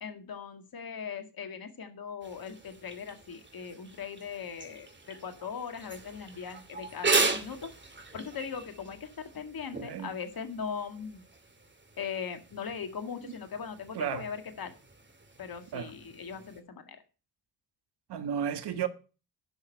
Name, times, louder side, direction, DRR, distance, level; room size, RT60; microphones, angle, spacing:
voice 1, 0.0-7.7 8.1-11.2 12.0-14.7 15.4-17.0, left 6 dB, 45° left, 2.0 m, -39 dB
sound 1, 2.2-16.6, right 3 dB, 20° right, 2.4 m, -37 dB
voice 2, 13.9-14.3 15.7-15.9 18.1-18.9, right 9 dB, 55° right, 1.3 m, -33 dB
11.5 x 6.5 x 5.6 m
hypercardioid pair, 45°, 48 cm